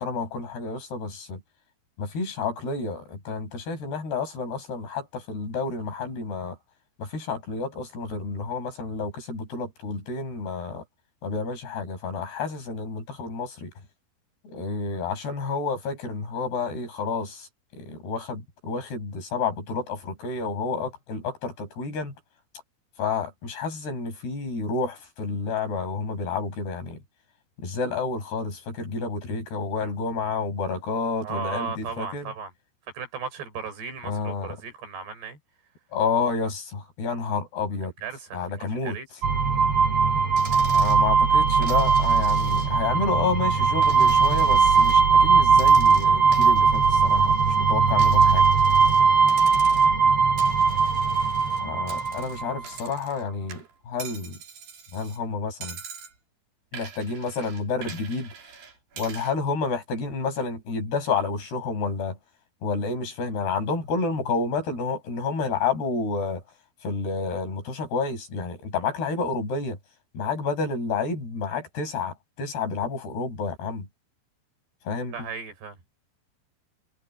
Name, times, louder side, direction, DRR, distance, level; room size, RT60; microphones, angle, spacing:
voice 1, 0.0-1.4 2.0-6.6 7.0-10.8 11.2-13.7 14.4-17.5 17.7-22.1 23.0-27.0 27.6-32.3 34.1-34.6 35.9-37.9 38.3-39.0 40.7-48.5 51.6-54.4 54.9-55.8 56.7-58.3 59.0-62.2 62.6-66.4 66.8-69.8 70.1-73.9 74.9-75.1, left 4 dB, 75° left, 8.2 m, -30 dB
voice 2, 31.2-32.5 32.9-35.4 38.0-39.1 75.1-75.8, right 5 dB, 90° right, 7.2 m, -36 dB
sound 1, 39.2-52.6, right 5 dB, 45° right, 2.6 m, -19 dB
Coin (dropping), 40.4-41.0 41.6-42.9 43.3-45.0 45.5-47.6 48.0-49.0 49.3-50.0 50.4-53.2 53.5-55.2 55.6-56.1 56.7-59.3, right 6 dB, 65° right, 5.6 m, -44 dB
omnidirectional pair, 4.6 m